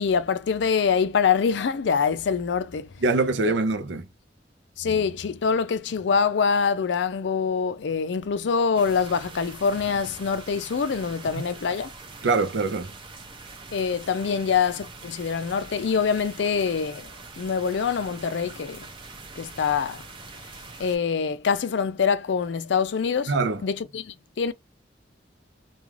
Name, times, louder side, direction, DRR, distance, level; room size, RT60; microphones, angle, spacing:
voice 1, 0.0-2.9 4.8-11.9 13.7-17.1 17.4-18.9 19.4-20.0 20.8-23.3 23.6-24.5, left 6 dB, 70° left, 0.4 m, -25 dB
voice 2, 3.0-4.1 12.2-12.9 23.3-23.6, right 3 dB, 75° right, 0.5 m, -23 dB
sound 1, 8.7-21.0, right 3 dB, 30° right, 0.6 m, -43 dB
2.4 x 2.3 x 3.1 m
head